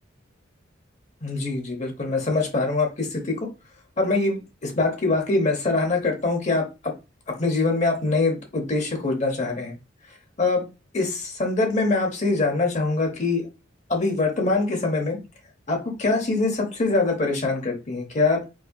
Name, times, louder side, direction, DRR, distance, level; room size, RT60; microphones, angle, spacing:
voice 1, 1.2-3.4 4.0-6.9 7.3-9.7 10.4-10.6 10.9-13.4 13.9-15.2 15.7-18.4, left 3 dB, 35° left, 3 dB, 0.8 m, -23 dB
4.7 x 2.3 x 2.6 m, 0.28 s
head